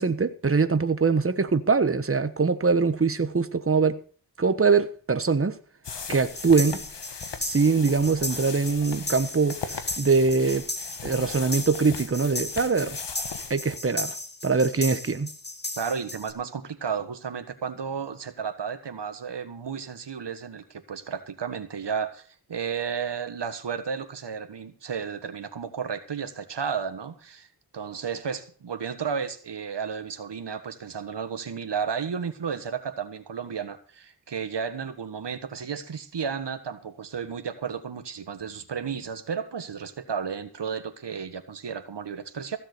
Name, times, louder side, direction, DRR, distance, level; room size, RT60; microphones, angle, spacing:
voice 1, 0.0-4.0 4.4-5.6 6.1-6.9 7.4-10.7 11.0-13.0 13.5-14.2 14.4-15.3, right 4 dB, 30° right, 1.2 m, -23 dB
sound 1, 5.8-13.8, left 6 dB, 75° left, 1.5 m, -39 dB
sound 2, 6.3-16.3, left 2 dB, 25° left, 2.1 m, -36 dB
voice 2, 15.8-27.5 27.7-42.6, right 6 dB, 75° right, 1.6 m, -33 dB
15.5 x 7.3 x 6.7 m
wide cardioid pair, 70°, 43 cm